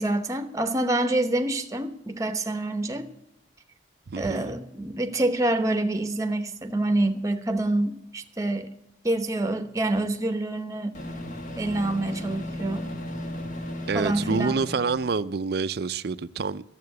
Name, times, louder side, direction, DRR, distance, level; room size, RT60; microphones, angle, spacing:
voice 1, 0.0-3.1 4.2-8.7 9.0-11.0 11.6-12.9 13.9-14.6, right 2 dB, 15° right, 0.9 m, -27 dB
voice 2, 4.1-4.5 13.9-16.6, right 4 dB, 55° right, 0.5 m, -27 dB
Microwave oven, 9.9-10.0 10.9-15.2, left 1 dB, 45° left, 1.3 m, -35 dB
12.5 x 7.5 x 7.9 m
head